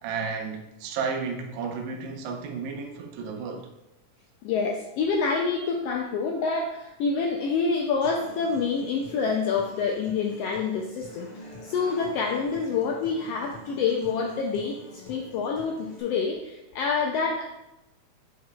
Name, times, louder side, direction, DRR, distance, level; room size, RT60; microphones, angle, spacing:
voice 1, 0.0-3.7, right 5 dB, 80° right, 2.1 m, -32 dB
voice 2, 4.4-17.4, left 5 dB, 80° left, 1.4 m, -27 dB
Human voice / Acoustic guitar, 8.0-16.0, left 1 dB, 65° left, 2.7 m, -46 dB
8.5 x 5.6 x 2.4 m
omnidirectional pair, 3.4 m